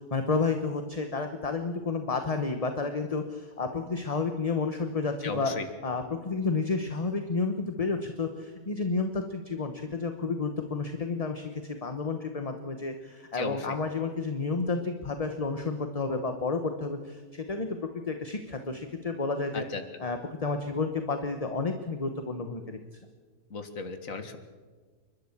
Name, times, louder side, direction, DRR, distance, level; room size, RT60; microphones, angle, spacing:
voice 1, 0.1-5.5 5.8-19.7 20.0-22.8, left 4 dB, 25° left, 6 dB, 1.1 m, -31 dB
voice 2, 5.2-5.7 13.3-13.6 19.5-19.8 23.5-24.4, left 4 dB, 60° left, 8 dB, 2.1 m, -35 dB
29.0 x 12.5 x 7.3 m, 1.5 s
omnidirectional pair, 1.6 m